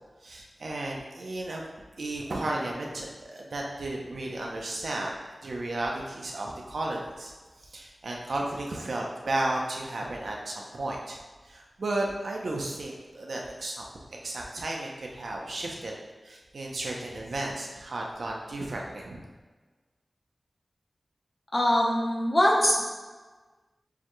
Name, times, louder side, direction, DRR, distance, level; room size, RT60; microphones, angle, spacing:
voice 1, 0.2-1.6 2.0-5.1 5.4-7.3 7.7-11.2 11.4-13.8 14.2-15.9 16.2-19.2, right 2 dB, 85° right, -1 dB, 0.6 m, -33 dB
voice 2, 21.5-22.8, left 1 dB, 35° left, -2 dB, 0.8 m, -22 dB
6.9 x 3.0 x 2.2 m, 1.3 s
wide cardioid pair, 85°, 0 cm